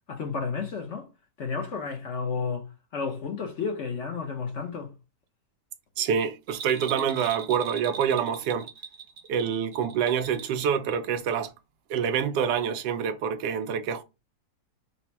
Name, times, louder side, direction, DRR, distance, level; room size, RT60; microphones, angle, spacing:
voice 1, 0.1-1.1 1.4-4.9, left 5 dB, 55° left, 0.9 m, -32 dB
voice 2, 6.0-8.7 9.3-11.5 11.9-14.0, right 7 dB, 85° right, 1.2 m, -26 dB
Bell, 6.5-10.6 10.9-11.0, right 6 dB, 70° right, 0.5 m, -40 dB
4.1 x 2.0 x 4.4 m
omnidirectional pair, 1.8 m